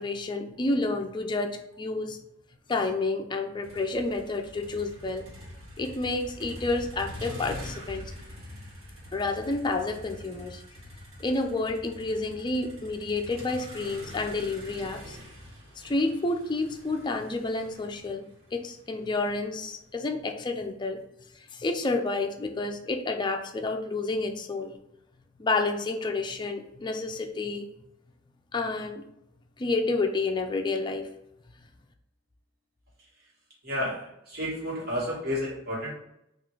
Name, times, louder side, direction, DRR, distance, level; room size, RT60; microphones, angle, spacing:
voice 1, 0.0-2.2 2.7-5.3 5.8-8.1 9.1-10.6 11.2-15.2 15.8-18.3 18.5-21.0 21.3-24.7 25.4-27.7 28.5-29.0 29.6-31.1, left 3 dB, 20° left, 4 dB, 0.4 m, -30 dB
Motor vehicle (road), 3.6-19.7, equal, 80° right, 1.3 m, -45 dB
voice 2, 33.6-36.0, left 1 dB, 50° right, -5 dB, 1.5 m, -31 dB
3.7 x 2.5 x 4.5 m, 0.81 s
head